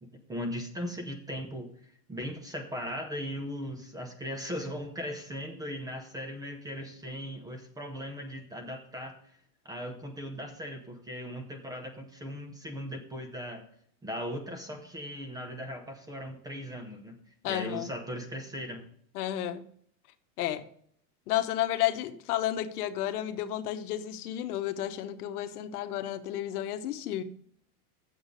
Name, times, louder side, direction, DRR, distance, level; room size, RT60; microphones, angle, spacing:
voice 1, 0.0-1.7 2.1-9.2 9.6-13.6 14.0-17.2 17.4-18.8, equal, 10° right, 0.8 m, -38 dB
voice 2, 17.4-17.9 19.1-19.7 20.4-20.6 21.3-27.2, left 12 dB, 80° left, 1.0 m, -32 dB
8.1 x 7.2 x 5.2 m
supercardioid pair, 155°, 45 cm